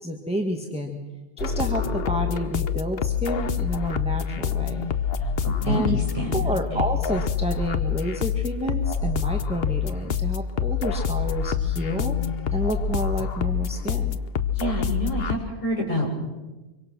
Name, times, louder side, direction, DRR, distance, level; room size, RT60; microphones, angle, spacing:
voice 1, 0.0-1.0 1.4-4.9 5.7-6.0 6.3-12.2 12.5-14.2, equal, 5° right, 2 dB, 1.7 m, -29 dB
sound 1, 1.4-15.4, left 7 dB, 55° left, 1.1 m, -26 dB
voice 2, 5.4-6.9 14.6-16.2, equal, 25° left, -2 dB, 6.8 m, -28 dB
25.0 x 24.0 x 6.3 m, 1.1 s
omnidirectional pair, 1.3 m